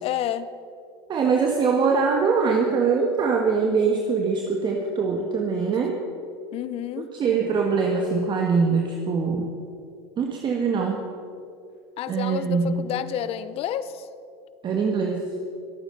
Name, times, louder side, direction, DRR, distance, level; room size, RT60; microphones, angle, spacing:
voice 1, 0.0-0.5 6.5-7.1 12.0-14.1, left 10 dB, 45° left, 15 dB, 0.8 m, -29 dB
voice 2, 1.1-6.0 7.0-9.5 10.2-11.0 12.1-12.9 14.6-15.3, right 5 dB, 35° right, 2 dB, 1.6 m, -23 dB
22.5 x 9.0 x 5.4 m, 2.5 s
hypercardioid pair, 95°, 13 cm